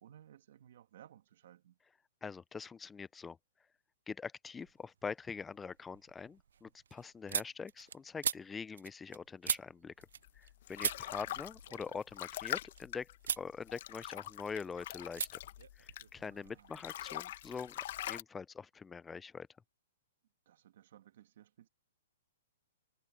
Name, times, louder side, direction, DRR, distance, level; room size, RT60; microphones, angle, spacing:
voice 1, 0.0-1.8 10.9-11.4 16.1-16.9 20.5-21.7, right 11 dB, 50° right, 2.5 m, -60 dB
voice 2, 2.2-3.4 4.1-10.1 10.4-13.1 13.4-15.3 15.8-17.8 18.1-19.5, left 5 dB, 10° left, 0.4 m, -44 dB
sound 1, 4.5-5.1 5.5-10.5 10.8-12.8 13.2-13.5 13.9-14.6 15.1-15.3 15.6-16.6, right 8 dB, 75° right, 0.3 m, -40 dB
sound 2, 10.2-16.3 16.6-18.2, left 13 dB, 45° left, 0.9 m, -43 dB
hypercardioid pair, 175°, 0 cm